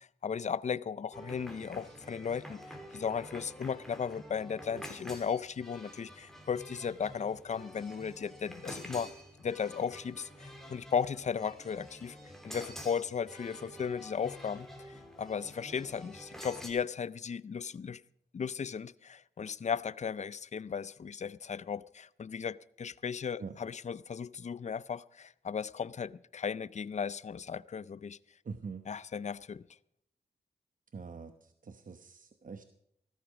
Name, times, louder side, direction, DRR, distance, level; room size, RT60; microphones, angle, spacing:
voice 1, 0.0-9.1 9.4-12.2 12.4-18.0 18.3-28.2 28.9-29.6, left 6 dB, 40° left, 0.5 m, -36 dB
sound 1, 1.1-16.7, equal, ahead, 3.3 m, -48 dB
voice 2, 28.4-28.8 30.9-32.6, right 5 dB, 50° right, 1.0 m, -44 dB
15.0 x 13.5 x 5.0 m
cardioid pair, 55°, 17 cm